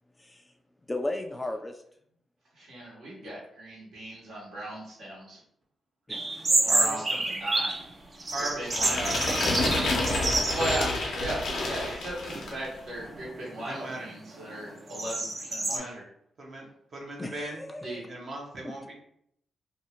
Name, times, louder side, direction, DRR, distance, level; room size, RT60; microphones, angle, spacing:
voice 1, 0.9-1.8 3.2-3.3 6.1-6.7 17.2-18.1 18.6-18.7, left 1 dB, 15° left, 4 dB, 0.4 m, -36 dB
voice 2, 2.6-5.4 6.6-7.7 8.4-9.4 10.5-16.0 17.8-18.0, right 1 dB, 80° right, -5 dB, 1.3 m, -37 dB
sound 1, 6.1-7.9 8.2-10.9 11.3-11.4 12.1-12.5 13.0-15.8, right 2 dB, 40° right, 0.5 m, -29 dB
voice 3, 6.6-7.2 8.3-9.2 13.7-14.1 15.7-16.0 16.4-16.7 16.9-17.6 18.1-18.9, right 2 dB, 60° right, -1 dB, 0.9 m, -37 dB
sound 2, 8.7-12.7, left 2 dB, 85° left, 0.6 m, -29 dB
2.7 x 2.4 x 2.8 m, 0.70 s
cardioid pair, 65°, 0 cm